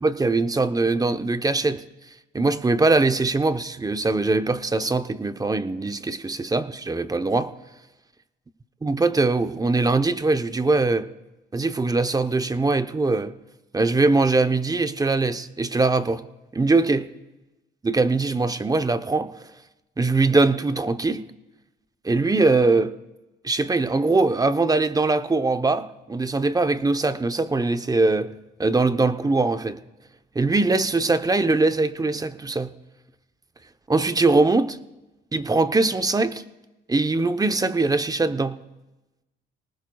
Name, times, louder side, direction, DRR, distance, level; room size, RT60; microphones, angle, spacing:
voice 1, 0.0-1.8 2.3-7.5 8.8-11.1 11.5-13.3 13.7-16.2 16.5-17.1 17.8-19.3 20.0-21.2 22.0-22.9 23.4-28.3 28.6-29.8 30.3-32.7 33.9-34.8 35.3-36.4 36.9-38.6, right 3 dB, 20° right, 0.8 m, -22 dB
29.0 x 19.0 x 2.3 m
cardioid pair, 90°, 20 cm